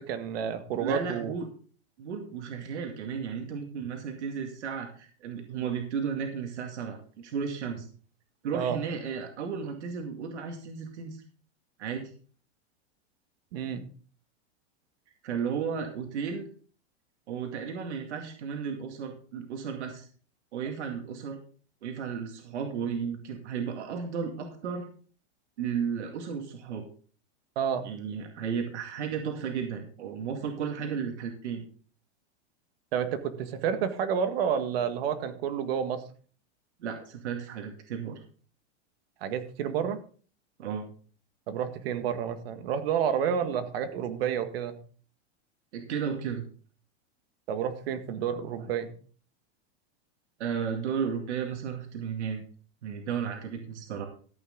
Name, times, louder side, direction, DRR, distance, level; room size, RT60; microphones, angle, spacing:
voice 1, 0.1-1.3 8.5-8.8 13.5-13.8 27.6-27.9 32.9-36.0 39.2-40.0 41.5-44.8 47.5-48.9, right 8 dB, 60° right, 9 dB, 1.8 m, -30 dB
voice 2, 0.8-1.5 2.0-7.9 8.4-11.2 11.8-12.1 15.2-16.5 17.3-20.1 20.5-21.4 21.8-24.9 25.6-26.9 27.8-31.6 36.8-38.2 40.6-40.9 45.7-46.4 50.4-52.4 52.8-54.1, right 6 dB, 90° right, 4 dB, 2.3 m, -34 dB
14.0 x 8.8 x 3.9 m, 0.41 s
supercardioid pair, 165°, 34 cm